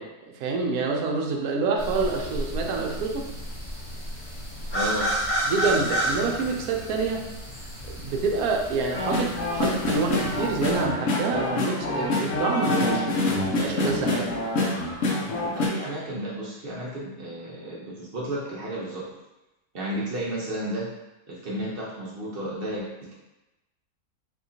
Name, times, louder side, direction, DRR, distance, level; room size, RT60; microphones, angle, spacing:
voice 1, 0.0-3.2 5.5-7.3 7.9-13.2 13.4-14.3, right 4 dB, 75° right, 0 dB, 1.0 m, -27 dB
sound 1, 1.8-10.8, right 1 dB, 25° left, 0.8 m, -32 dB
voice 2, 4.7-5.1 15.4-19.0 19.7-20.9 21.3-23.1, right 1 dB, 45° right, -5 dB, 0.8 m, -32 dB
sound 2, 8.9-15.7, left 2 dB, 60° left, 0.9 m, -26 dB
3.6 x 2.8 x 2.7 m, 0.99 s
omnidirectional pair, 1.7 m